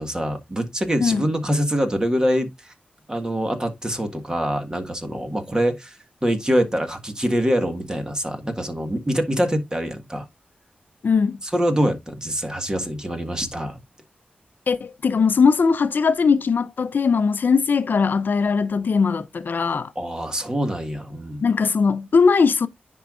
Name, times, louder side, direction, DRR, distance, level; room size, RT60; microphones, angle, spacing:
voice 1, 0.0-2.7 3.1-10.3 11.4-13.8 19.9-21.4, equal, 20° right, 1.6 m, -24 dB
voice 2, 11.0-11.4 14.7-19.9 21.4-22.7, left 5 dB, 60° left, 0.6 m, -20 dB
10.0 x 4.6 x 2.5 m
wide cardioid pair, 80°, 4 cm